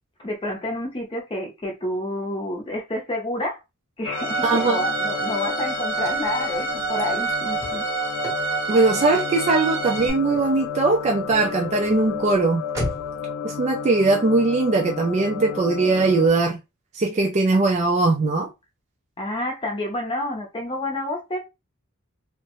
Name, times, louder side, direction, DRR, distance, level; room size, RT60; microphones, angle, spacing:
voice 1, 0.2-3.6 4.0-7.8 19.2-21.4, left 1 dB, 25° left, 0.6 m, -29 dB
sound 1, 4.1-16.3, left 7 dB, 75° left, 0.4 m, -32 dB
Bowed string instrument, 4.1-10.1, right 6 dB, 60° right, 0.7 m, -28 dB
voice 2, 4.4-4.8 8.7-12.6 13.4-16.6 16.9-18.5, right 3 dB, 30° right, 0.4 m, -20 dB
Car / Slam, 4.6-13.3, equal, 15° right, 0.9 m, -39 dB
2.7 x 2.1 x 2.9 m
head